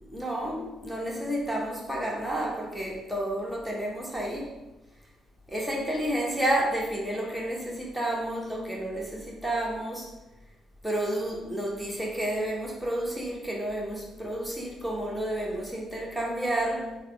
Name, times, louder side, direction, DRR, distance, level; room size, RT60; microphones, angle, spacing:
voice 1, 0.1-4.6 5.5-10.1 10.8-17.0, right 1 dB, 5° right, -3 dB, 1.2 m, -30 dB
3.4 x 2.0 x 3.3 m, 1.0 s
hypercardioid pair, 50°, 0 cm